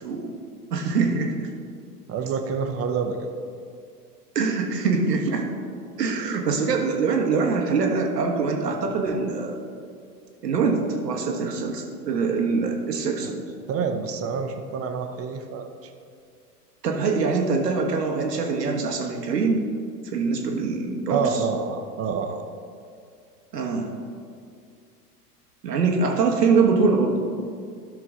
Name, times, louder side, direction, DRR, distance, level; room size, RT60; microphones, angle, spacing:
voice 1, 0.0-0.3 0.7-1.5 4.3-5.5 6.0-9.6 10.4-13.4 16.8-19.6 20.1-21.4 23.5-23.9 25.6-27.2, right 4 dB, 80° right, 2 dB, 1.4 m, -23 dB
voice 2, 2.1-3.3 13.7-15.9 21.1-22.4, right 5 dB, 30° right, 6 dB, 0.9 m, -27 dB
12.0 x 6.0 x 3.7 m, 2.3 s
hypercardioid pair, 90°, 48 cm